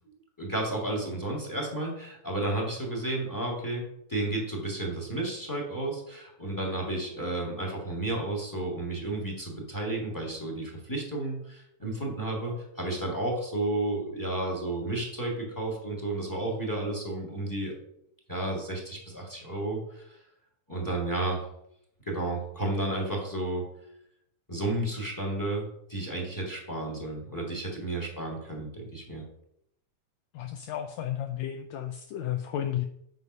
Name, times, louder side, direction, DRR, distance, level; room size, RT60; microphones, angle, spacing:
voice 1, 0.4-17.7 18.3-20.0 20.7-21.4 22.0-23.7 24.5-29.2, right 2 dB, 10° left, -1 dB, 1.2 m, -32 dB
voice 2, 30.3-32.9, left 11 dB, 85° left, 7 dB, 1.5 m, -33 dB
7.9 x 5.2 x 5.4 m, 0.75 s
omnidirectional pair, 3.6 m